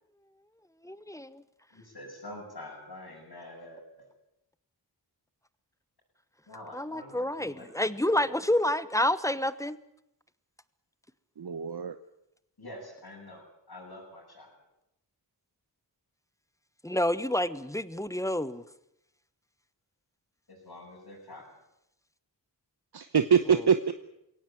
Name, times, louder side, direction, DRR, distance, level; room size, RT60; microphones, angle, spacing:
voice 1, 0.8-1.4 6.7-9.8 16.8-18.6, left 1 dB, 5° left, 15 dB, 1.2 m, -29 dB
voice 2, 1.7-4.1 6.5-7.7 12.6-14.5 20.5-21.4, left 1 dB, 65° left, -6 dB, 7.7 m, -46 dB
voice 3, 11.4-12.0 22.9-23.9, right 7 dB, 65° right, 10 dB, 1.0 m, -24 dB
22.5 x 17.5 x 9.1 m, 0.83 s
wide cardioid pair, 55°, 42 cm